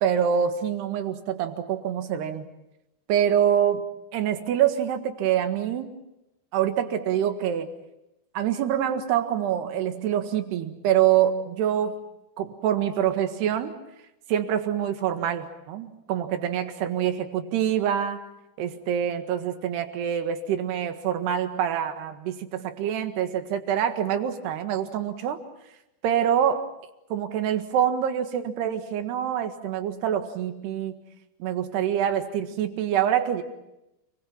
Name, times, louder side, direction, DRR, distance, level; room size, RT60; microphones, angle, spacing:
voice 1, 0.0-2.5 3.1-6.0 6.5-7.7 8.4-12.0 12.4-13.7 14.3-18.2 18.6-25.4 26.0-26.7 27.1-31.0 31.4-33.4, right 9 dB, 75° right, 7 dB, 3.8 m, -25 dB
29.0 x 23.0 x 7.3 m, 0.91 s
omnidirectional pair, 4.8 m